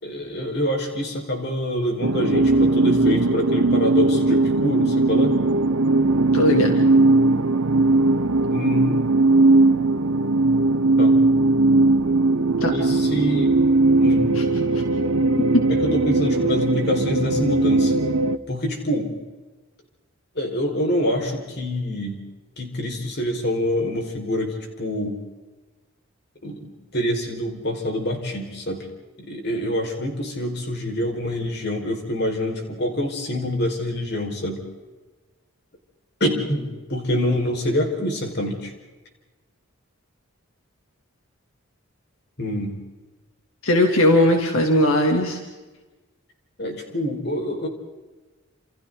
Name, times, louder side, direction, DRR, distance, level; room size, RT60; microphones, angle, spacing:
voice 1, 0.0-5.3 8.5-9.0 11.0-11.1 12.7-13.5 14.0-14.3 15.7-17.9 18.5-19.1 20.3-22.2 22.6-25.2 26.4-28.9 29.2-34.6 36.2-38.7 42.4-42.7 46.6-47.7, left 1 dB, 50° left, 2 dB, 5.0 m, -26 dB
sound 1, 2.0-18.4, right 2 dB, 80° right, 1.1 m, -19 dB
voice 2, 6.3-6.7 12.6-12.7 14.4-14.5 14.7-14.8 15.5-15.6 43.6-45.4, left 1 dB, 80° left, 2 dB, 2.8 m, -18 dB
29.0 x 29.0 x 4.0 m, 1.2 s
head